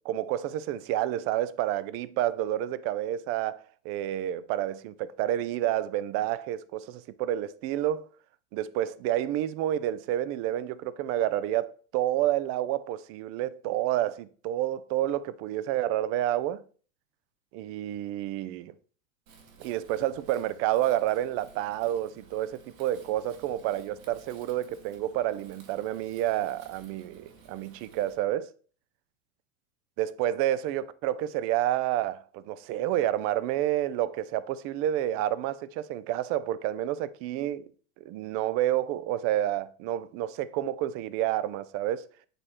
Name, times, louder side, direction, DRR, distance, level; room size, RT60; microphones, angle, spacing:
voice 1, 0.0-8.1 8.5-16.6 17.5-18.7 19.6-28.5 30.0-37.7 38.0-42.1, right 13 dB, 35° right, 0.4 m, -29 dB
Wind, 19.3-28.1, right 5 dB, 75° right, 1.8 m, -55 dB
7.7 x 3.1 x 4.3 m
hypercardioid pair, 115°, 42 cm